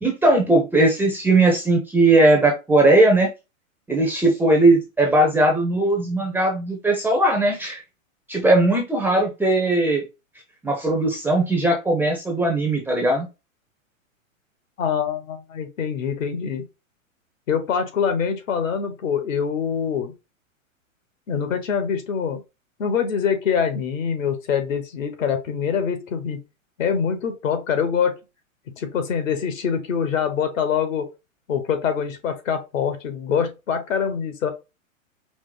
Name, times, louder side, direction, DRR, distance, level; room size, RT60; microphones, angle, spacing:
voice 1, 0.0-3.3 3.9-7.8 8.3-10.0 10.6-13.3, right 2 dB, 5° right, 0.5 m, -18 dB
voice 2, 14.8-16.7 17.5-20.1 21.3-22.4 22.8-26.4 26.8-28.2 28.8-31.1 31.5-34.5, left 7 dB, 70° left, 1.4 m, -24 dB
4.9 x 2.1 x 3.8 m
hypercardioid pair, 125°, 41 cm